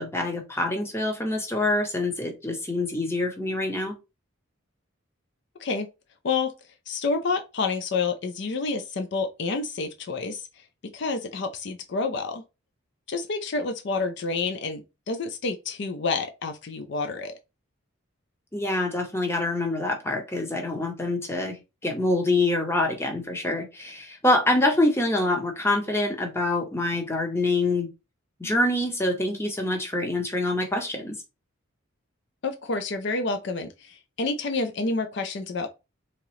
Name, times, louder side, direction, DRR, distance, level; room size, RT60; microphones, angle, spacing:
voice 1, 0.0-4.0 18.5-27.9 28.4-31.2, left 2 dB, 10° left, 0.7 m, -25 dB
voice 2, 6.9-10.4 10.9-12.4 13.1-17.4 32.4-35.7, left 4 dB, 55° left, 0.4 m, -29 dB
3.6 x 2.9 x 3.0 m
head